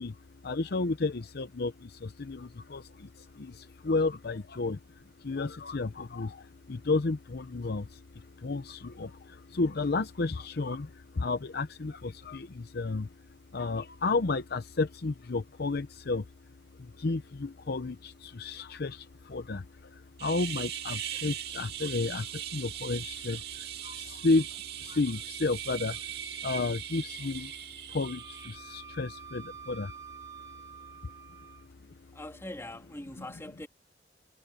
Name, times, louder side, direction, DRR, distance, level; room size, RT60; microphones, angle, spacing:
voice 1, 0.0-16.3 16.8-27.6 27.9-30.0 30.3-30.4 31.0-31.1 31.4-31.5 33.2-33.3, left 3 dB, 60° left, 0.7 m, -32 dB
sound 1, 20.2-28.6, right 10 dB, 60° right, 2.1 m, -39 dB
Wind instrument woodwind instrument, 28.0-31.7, right 7 dB, 20° right, 2.2 m, -48 dB
voice 2, 31.8-33.7, left 1 dB, 15° left, 3.1 m, -43 dB
head